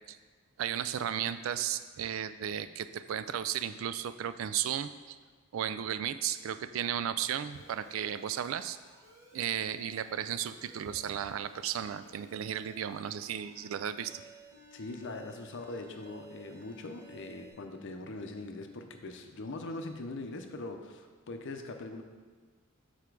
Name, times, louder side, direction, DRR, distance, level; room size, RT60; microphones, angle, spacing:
voice 1, 0.6-5.2 5.5-8.8 9.3-14.2, right 9 dB, 70° right, 12 dB, 0.3 m, -34 dB
Alarm, 7.5-17.5, right 2 dB, 15° right, 1.1 m, -57 dB
voice 2, 14.7-22.0, left 2 dB, 65° left, 5 dB, 0.6 m, -41 dB
6.9 x 4.4 x 4.7 m, 1.5 s
head